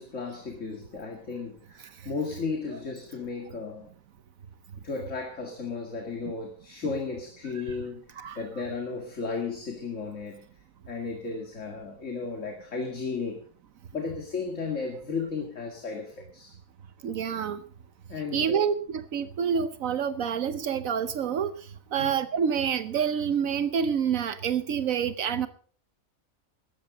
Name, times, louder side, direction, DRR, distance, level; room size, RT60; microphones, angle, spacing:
voice 1, 0.0-3.9 4.8-10.4 10.9-13.5 13.9-16.5 18.1-18.6 22.0-22.1, left 4 dB, 60° left, 2 dB, 2.5 m, -34 dB
voice 2, 17.0-17.6 18.3-21.5 21.9-25.5, right 7 dB, 75° right, 12 dB, 1.2 m, -27 dB
16.5 x 13.5 x 3.8 m, 0.43 s
omnidirectional pair, 1.4 m